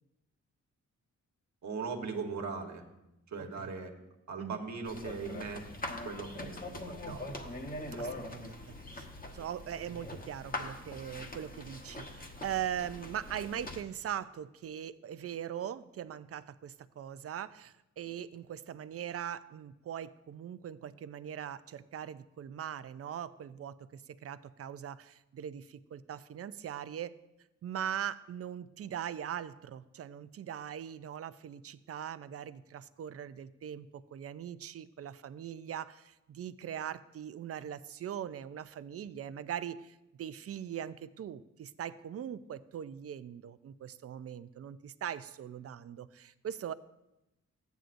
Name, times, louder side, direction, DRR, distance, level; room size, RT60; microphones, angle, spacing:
voice 1, 1.6-2.8 3.3-3.9 4.3-5.6 6.0-7.2 7.9-8.1, right 5 dB, 70° right, 4 dB, 1.2 m, -39 dB
sound 1, 4.8-13.8, left 1 dB, 30° left, 1.1 m, -43 dB
voice 2, 8.0-9.1 9.3-27.1 27.6-46.7, right 9 dB, 50° right, 15 dB, 0.4 m, -41 dB
14.0 x 9.2 x 2.6 m, 0.93 s
wide cardioid pair, 105°, 29 cm